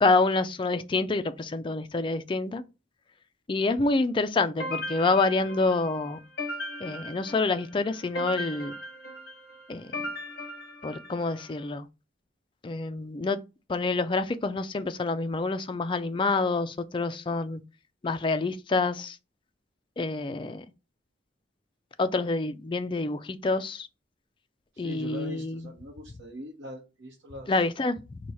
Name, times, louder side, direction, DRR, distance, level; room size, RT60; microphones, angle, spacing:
voice 1, 0.0-2.6 3.5-6.2 6.8-8.7 9.7-9.9 10.8-11.9 12.6-13.4 13.7-17.6 18.0-19.2 20.0-20.6 22.0-23.9 24.8-25.7 27.5-28.2, left 3 dB, 25° left, 0.3 m, -27 dB
sound 1, 4.6-11.5, left 1 dB, 50° left, 1.0 m, -38 dB
voice 2, 24.7-27.6, equal, 75° right, 1.0 m, -42 dB
4.6 x 2.3 x 4.1 m
head